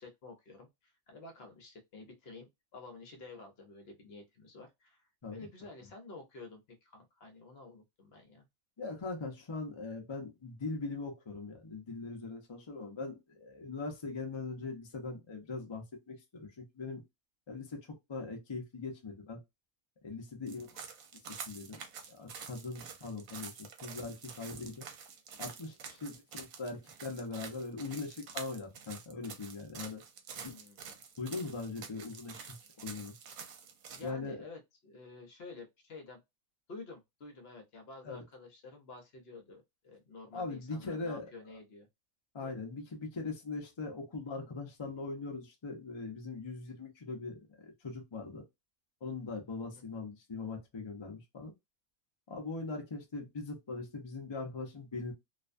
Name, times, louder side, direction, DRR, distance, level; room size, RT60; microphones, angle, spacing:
voice 1, 0.0-8.4 20.4-20.7 26.0-26.1 30.3-30.9 33.9-36.2 36.7-41.9 42.4-42.5, left 3 dB, 55° left, 0.8 m, -51 dB
voice 2, 8.8-17.0 17.5-17.8 18.1-19.4 20.0-20.8 21.3-21.8 22.1-24.8 25.4-30.0 31.2-32.5 32.8-33.1 34.0-34.4 38.1-38.2 40.3-41.2 42.3-48.4 49.0-51.5 52.3-55.1, left 3 dB, 40° left, 0.4 m, -41 dB
sound 1, 20.5-34.1, right 6 dB, 80° right, 1.0 m, -48 dB
2.5 x 2.2 x 2.4 m
omnidirectional pair, 1.4 m